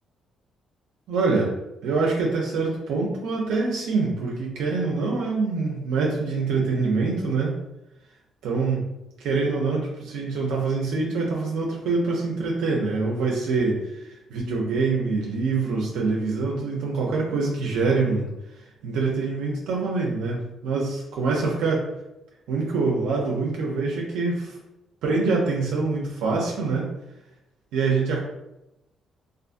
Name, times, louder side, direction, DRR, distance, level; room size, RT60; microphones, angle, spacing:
voice 1, 1.1-1.5 1.8-7.6 8.4-8.8 9.2-13.8 14.3-18.3 18.8-21.8 22.5-24.5 25.0-26.9 27.7-28.2, right 4 dB, 90° right, -2 dB, 0.4 m, -25 dB
2.5 x 2.4 x 2.4 m, 0.91 s
cardioid pair, 90°, 0 cm